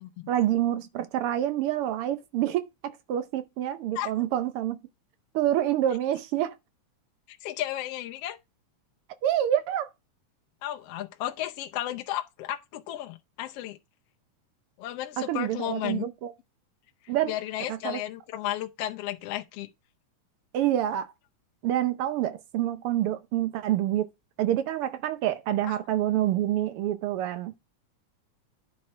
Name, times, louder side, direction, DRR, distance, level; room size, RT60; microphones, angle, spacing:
voice 1, 0.3-2.6 3.1-4.8 5.3-6.5 9.2-9.9 15.3-16.3 17.1-17.3 17.7-18.0 20.5-21.1 21.6-24.1 24.4-27.5, right 12 dB, 85° right, 1.2 m, -27 dB
voice 2, 7.3-8.4 10.6-13.8 14.8-16.0 17.0-19.7 25.7-25.8, left 13 dB, 70° left, 1.5 m, -34 dB
10.0 x 4.4 x 4.4 m
omnidirectional pair, 3.4 m